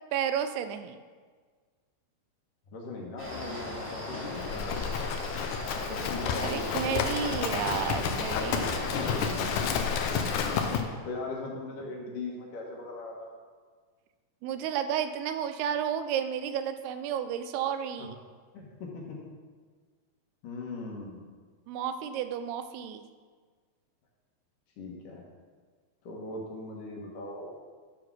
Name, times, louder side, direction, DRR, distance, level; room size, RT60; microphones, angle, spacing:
voice 1, 0.1-1.0 6.4-9.0 14.4-18.2 21.7-23.1, right 9 dB, 85° right, 9 dB, 2.6 m, -32 dB
voice 2, 2.7-5.2 5.7-7.2 8.8-10.2 11.0-13.4 18.0-18.1 18.5-19.2 20.4-21.2 24.8-25.3 26.0-27.6, left 3 dB, 65° left, -2 dB, 2.7 m, -40 dB
sound 1, 3.2-10.7, left 2 dB, 5° left, 1.4 m, -38 dB
Livestock farm animals working animals, 4.4-10.8, left 6 dB, 80° left, 1.8 m, -31 dB
12.0 x 4.8 x 6.1 m, 1.5 s
omnidirectional pair, 4.5 m